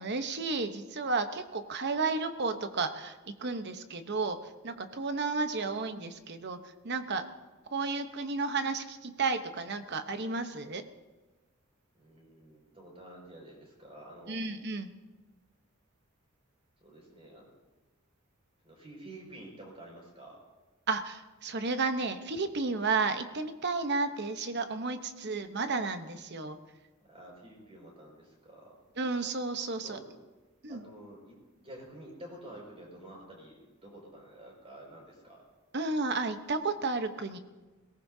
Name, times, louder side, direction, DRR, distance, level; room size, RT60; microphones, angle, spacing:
voice 1, 0.0-7.3 7.7-10.8 14.3-14.9 20.9-26.6 29.0-30.0 30.6-30.8 35.7-37.4, right 3 dB, 55° right, 8 dB, 1.0 m, -32 dB
voice 2, 11.9-14.4 16.8-17.5 18.6-20.4 27.1-28.7 29.8-30.1 30.7-31.4 31.6-35.4, right 1 dB, 30° right, -1 dB, 5.5 m, -49 dB
22.0 x 18.5 x 2.8 m, 1.2 s
head